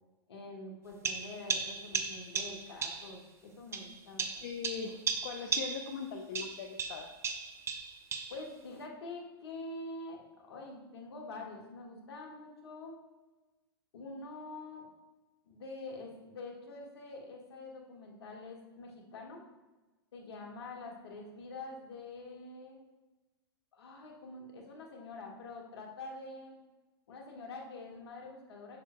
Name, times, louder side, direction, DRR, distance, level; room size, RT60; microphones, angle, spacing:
voice 1, 0.3-4.5 8.3-12.9 13.9-14.9 15.4-19.4 20.1-22.8 23.7-26.6 27.1-28.8, left 2 dB, 75° left, 0 dB, 1.7 m, -46 dB
sound 1, 1.0-3.1 3.7-6.0 6.3-8.4, right 5 dB, 20° right, 0.7 m, -36 dB
voice 2, 4.4-7.1, left 6 dB, 55° left, 3 dB, 0.7 m, -40 dB
7.6 x 6.4 x 2.2 m, 1.1 s
hypercardioid pair, 110°, 13 cm